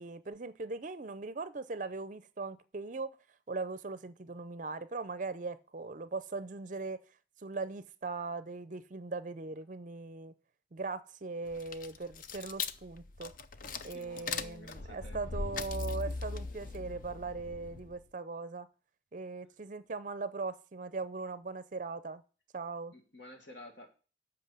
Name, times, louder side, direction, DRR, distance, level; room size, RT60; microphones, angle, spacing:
voice 1, 0.0-3.1 3.5-7.0 7.4-10.3 10.7-13.3 13.8-18.7 19.1-22.2 22.5-22.9, right 3 dB, 45° right, 14 dB, 0.5 m, -39 dB
sound 1, 11.5-18.0, left 4 dB, 50° left, 0.5 m, -40 dB
voice 2, 13.6-15.2 22.9-23.9, left 1 dB, 75° left, 3 dB, 1.6 m, -52 dB
7.7 x 5.6 x 6.7 m, 0.37 s
head